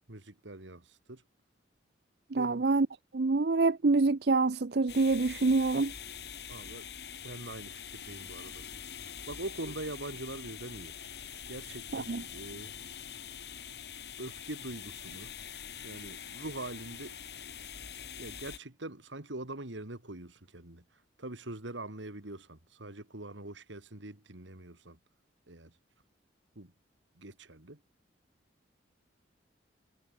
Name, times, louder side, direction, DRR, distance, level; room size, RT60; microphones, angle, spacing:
voice 1, 0.1-1.2 2.3-2.7 6.5-6.8 7.2-8.6 9.0-10.9 11.5-12.7 14.2-15.3 15.8-17.2 18.2-20.8 21.2-25.0 25.5-25.7 26.6-26.7 27.2-27.8, right 2 dB, 80° right, 2.7 m, -43 dB
voice 2, 2.3-2.9 3.1-5.9 11.9-12.2, right 3 dB, 60° right, 0.6 m, -26 dB
sound 1, 4.9-18.6, left 8 dB, 60° left, 3.3 m, -44 dB
head